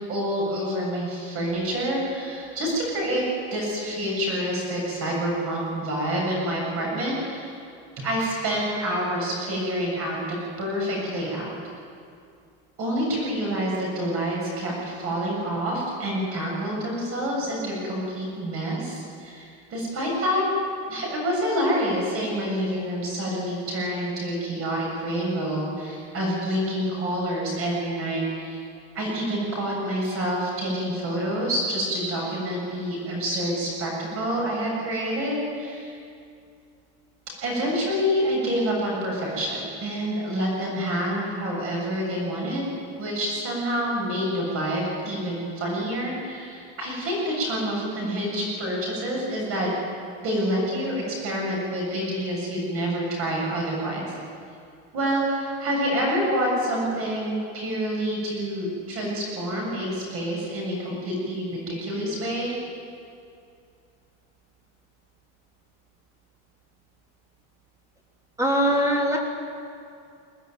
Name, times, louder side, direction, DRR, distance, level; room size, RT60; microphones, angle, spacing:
voice 1, 0.1-3.2 3.5-7.5 8.0-11.6 12.8-20.4 20.9-28.6 28.9-36.0 37.4-42.7 43.0-49.7 50.2-54.1 54.9-62.5, equal, 35° right, -2 dB, 7.5 m, -27 dB
voice 2, 68.4-69.2, equal, 10° right, 0 dB, 3.0 m, -21 dB
22.5 x 18.0 x 9.3 m, 2.4 s
cardioid pair, 170°, 37 cm